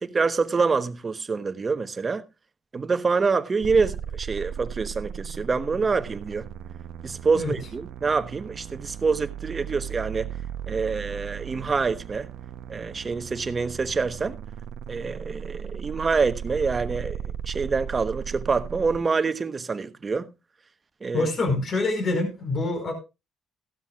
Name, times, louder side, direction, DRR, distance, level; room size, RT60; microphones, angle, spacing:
voice 1, 0.0-2.2 2.7-6.5 7.0-10.3 10.7-12.3 12.7-14.4 14.9-20.3 21.0-21.3, right 4 dB, 40° right, 1.1 m, -26 dB
sound 1, 3.6-19.0, right 8 dB, 80° right, 0.8 m, -37 dB
voice 2, 21.1-22.9, left 3 dB, 55° left, 4.7 m, -25 dB
15.5 x 12.5 x 2.4 m
supercardioid pair, 60°, 0 cm